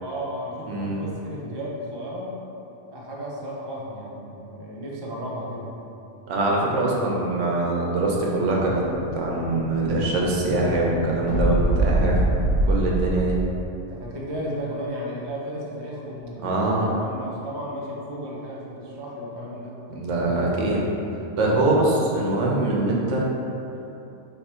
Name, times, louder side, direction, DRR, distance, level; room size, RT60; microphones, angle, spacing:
voice 1, 0.0-2.4 2.9-5.7 13.9-19.8, equal, 35° right, -5 dB, 0.4 m, -34 dB
voice 2, 0.7-1.0 6.3-8.8 9.1-12.2 12.6-13.4 16.4-17.0 19.9-20.9 21.4-23.3, right 2 dB, 75° right, -3 dB, 1.0 m, -23 dB
Explosion, 8.2-13.6, right 1 dB, 80° left, 1.4 m, -26 dB
3.4 x 2.9 x 4.3 m, 2.9 s
omnidirectional pair, 1.3 m